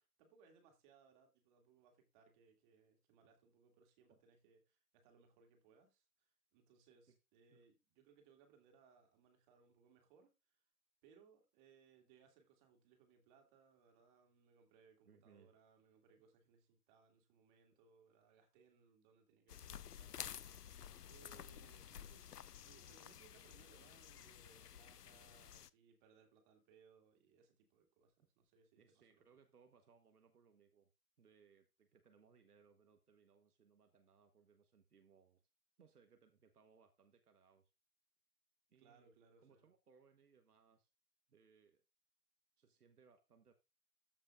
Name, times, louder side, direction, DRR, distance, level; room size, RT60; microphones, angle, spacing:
voice 1, 0.0-10.6 11.0-20.7 21.0-29.2 38.8-39.7, right 6 dB, 30° right, 2.3 m, -69 dB
voice 2, 15.1-15.5 17.7-17.8 28.8-30.9 31.2-35.4 35.8-37.7 38.7-39.1 39.4-40.9 41.3-41.8 42.6-43.5, right 6 dB, 75° right, 1.3 m, -69 dB
sound 1, 19.5-25.7, left 9 dB, 80° left, 0.6 m, -53 dB
14.0 x 5.5 x 2.5 m
figure-of-eight pair, 125°, 46 cm